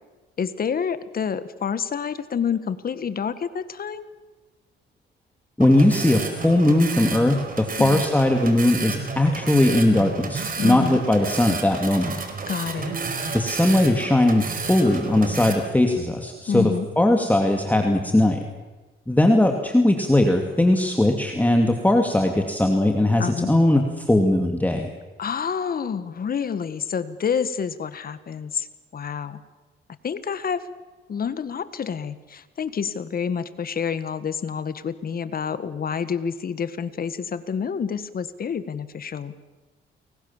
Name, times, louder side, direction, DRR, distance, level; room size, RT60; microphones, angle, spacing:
voice 1, 0.4-4.1 7.8-8.0 10.6-11.0 12.5-13.0 16.5-16.9 23.2-23.5 25.2-28.7 28.9-29.4 30.0-30.7 31.1-39.3, left 7 dB, 50° left, 13 dB, 1.7 m, -28 dB
voice 2, 5.6-12.1 13.3-18.4 19.1-24.9, left 1 dB, 10° left, 4 dB, 2.6 m, -19 dB
sound 1, 5.6-15.5, right 4 dB, 45° right, 4.8 m, -31 dB
30.0 x 22.0 x 7.4 m, 1.2 s
cardioid pair, 90°, 20 cm